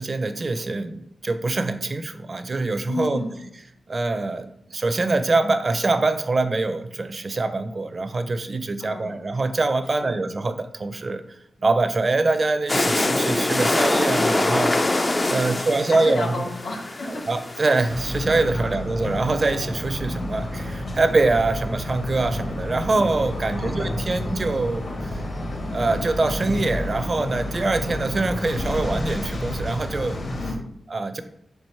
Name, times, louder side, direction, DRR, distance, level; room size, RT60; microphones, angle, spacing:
voice 1, 0.0-3.2 3.9-11.2 11.6-16.3 17.1-25.2 25.7-30.2 30.9-31.2, right 3 dB, 35° right, 9 dB, 0.5 m, -24 dB
voice 2, 2.9-3.4 8.8-9.2 10.0-10.2 15.3-17.2 18.5-18.7 23.3-23.9 30.4-30.7, left 2 dB, 90° left, -1 dB, 1.7 m, -33 dB
sound 1, 12.7-18.2, left 2 dB, 25° left, 0.4 m, -24 dB
sound 2, 17.9-30.5, left 1 dB, 50° left, 1.1 m, -30 dB
4.9 x 4.6 x 5.5 m, 0.74 s
wide cardioid pair, 150°, 0 cm